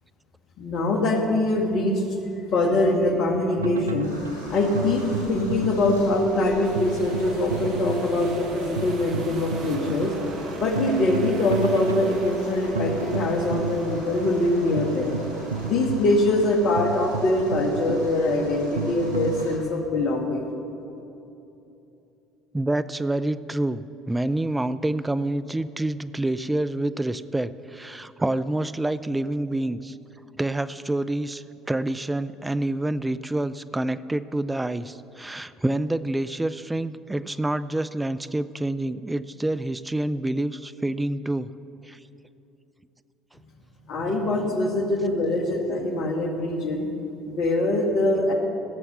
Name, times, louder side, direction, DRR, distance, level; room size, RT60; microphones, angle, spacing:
voice 1, 0.6-2.0 2.5-4.2 4.5-10.1 10.6-15.1 15.7-20.5 43.9-46.9 47.3-48.3, left 2 dB, 55° left, 3 dB, 1.9 m, -23 dB
sound 1, 3.6-19.5, right 4 dB, 90° right, 0.4 m, -32 dB
sound 2, 4.0-19.6, equal, 90° left, 3.1 m, -43 dB
sound 3, 6.6-15.7, right 2 dB, 50° right, 1.5 m, -39 dB
voice 2, 22.5-30.0 30.4-41.5 41.8-42.0 44.4-44.5, right 1 dB, 10° right, 14 dB, 0.5 m, -27 dB
17.0 x 7.1 x 6.9 m, 2.9 s
hypercardioid pair, 60°, 0 cm